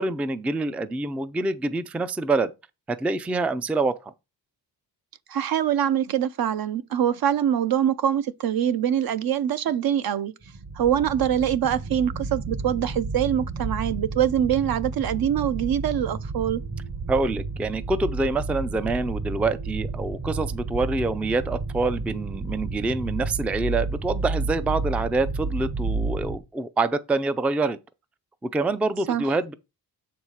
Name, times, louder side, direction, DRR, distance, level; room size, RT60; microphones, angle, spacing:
voice 1, 0.0-2.5 2.9-4.1 17.1-27.8 28.4-29.5, right 3 dB, 5° right, 0.3 m, -26 dB
voice 2, 5.3-10.3 10.7-16.6 29.1-29.3, right 10 dB, 60° right, 0.7 m, -24 dB
sound 1, 10.4-26.4, right 3 dB, 40° right, 1.1 m, -31 dB
7.2 x 4.7 x 5.6 m
wide cardioid pair, 130°, 40 cm